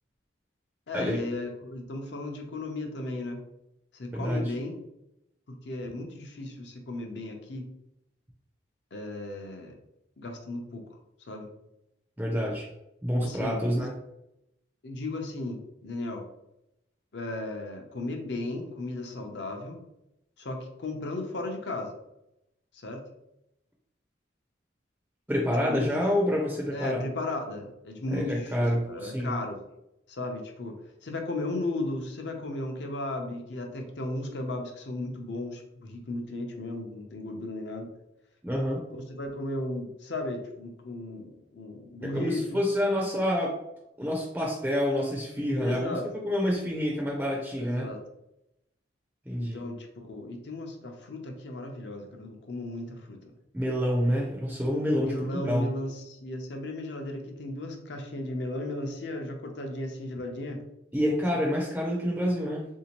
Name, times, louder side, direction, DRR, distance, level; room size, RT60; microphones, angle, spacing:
voice 1, 0.9-3.4 3.9-4.7 5.5-7.7 8.9-9.8 10.2-10.8 11.3-11.5 13.2-13.6 14.8-16.2 17.1-19.8 20.4-21.9 22.8-23.0 25.6-26.0 26.7-29.6 30.1-30.7 31.0-37.9 38.9-42.6 45.5-46.0 47.6-48.0 49.4-53.3 54.9-60.6, left 2 dB, 60° left, 3 dB, 0.6 m, -35 dB
voice 2, 4.1-4.5 12.2-12.7 13.0-13.9 25.3-27.0 28.1-29.4 38.4-38.8 42.0-43.6 44.0-47.9 49.3-49.6 53.5-55.7 60.9-62.7, equal, 10° right, -2 dB, 0.4 m, -28 dB
3.4 x 2.7 x 2.9 m, 0.85 s
head